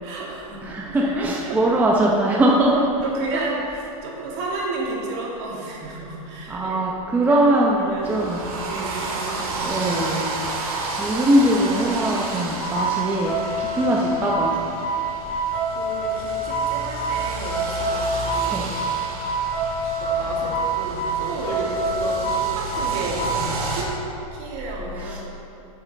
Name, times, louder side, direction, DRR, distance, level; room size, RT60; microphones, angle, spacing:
voice 1, 0.0-0.6 0.9-1.1 1.4-1.6 3.0-6.8 7.2-7.5 7.8-9.7 11.1-11.3 13.7-13.9 15.7-18.1 18.3-18.7 20.0-23.9 24.3-25.2, right 3 dB, 50° right, -4 dB, 2.4 m, -32 dB
voice 2, 0.6-2.8 3.3-3.4 6.5-8.4 9.6-10.4 11.0-14.7 18.5-18.7 25.0-25.2, right 1 dB, 10° right, -3 dB, 0.7 m, -21 dB
sound 1, 8.0-23.8, right 3 dB, 80° right, 2.0 m, -31 dB
sound 2, 12.6-23.4, right 2 dB, 35° left, 2.4 m, -26 dB
11.5 x 6.7 x 4.2 m, 2.7 s
supercardioid pair, 145°, 19 cm